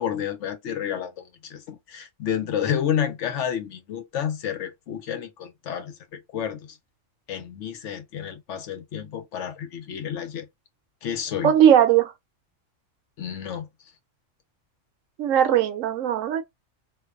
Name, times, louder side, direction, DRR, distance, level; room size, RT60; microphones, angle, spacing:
voice 1, 0.0-6.7 7.3-10.5 11.0-11.5 13.2-13.7, left 9 dB, 70° left, 1.0 m, -30 dB
voice 2, 11.4-12.1 15.2-16.4, right 10 dB, 80° right, 1.0 m, -18 dB
2.5 x 2.2 x 2.3 m
omnidirectional pair, 1.3 m